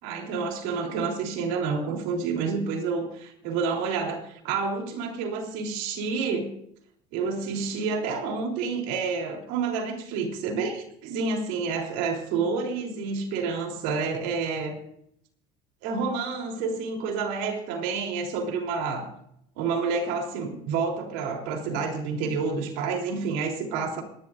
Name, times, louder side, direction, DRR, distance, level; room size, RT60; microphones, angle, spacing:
voice 1, 0.0-6.5 7.1-14.8 15.8-19.1 19.6-24.0, right 5 dB, 80° right, 2 dB, 3.5 m, -29 dB
26.5 x 11.5 x 2.6 m, 0.73 s
supercardioid pair, 100°, 18 cm